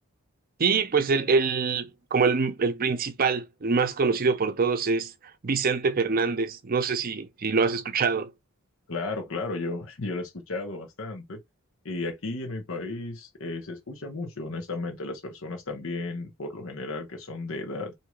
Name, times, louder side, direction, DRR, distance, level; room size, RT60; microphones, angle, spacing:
voice 1, 0.6-5.1 5.4-8.3, right 4 dB, 45° right, 0.5 m, -25 dB
voice 2, 8.9-11.4 11.8-17.9, left 2 dB, 70° left, 1.0 m, -34 dB
4.6 x 2.7 x 2.2 m
head